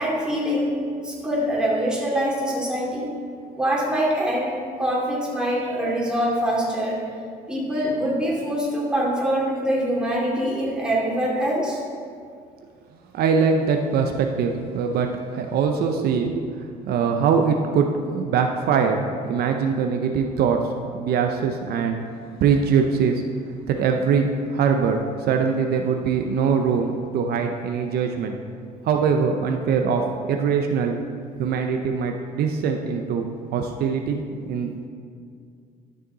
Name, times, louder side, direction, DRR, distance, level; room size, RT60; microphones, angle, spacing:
voice 1, 0.0-3.1 3.5-4.5 4.8-7.0 7.5-11.8, equal, 5° right, -5 dB, 2.7 m, -24 dB
voice 2, 13.1-20.6 20.9-22.0 22.4-23.2 23.7-28.4 28.8-30.0 30.3-31.0 31.4-34.9, right 6 dB, 70° right, 4 dB, 0.7 m, -22 dB
12.0 x 6.5 x 4.0 m, 2.2 s
cardioid pair, 110°, 17 cm